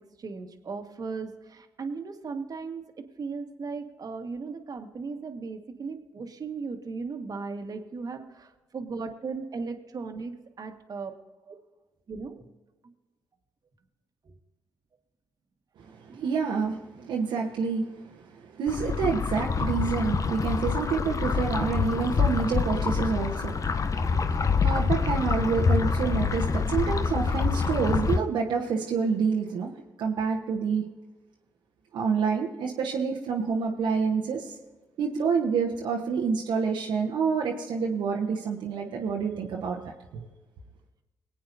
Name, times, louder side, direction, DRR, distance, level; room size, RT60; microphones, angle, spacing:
voice 1, 0.2-2.8 3.2-11.1 11.5-11.6 12.1-12.5 14.2-14.3 16.1-16.3 17.0-17.1, right 4 dB, 50° right, 5 dB, 1.5 m, -37 dB
voice 2, 15.8-29.7 30.0-30.8 31.9-34.5 35.0-39.8 40.1-40.2, right 5 dB, 70° right, -2 dB, 1.1 m, -28 dB
sound 1, 18.7-28.2, left 5 dB, 40° left, 0.7 m, -26 dB
22.5 x 8.6 x 2.7 m, 1.2 s
hypercardioid pair, 45°, 8 cm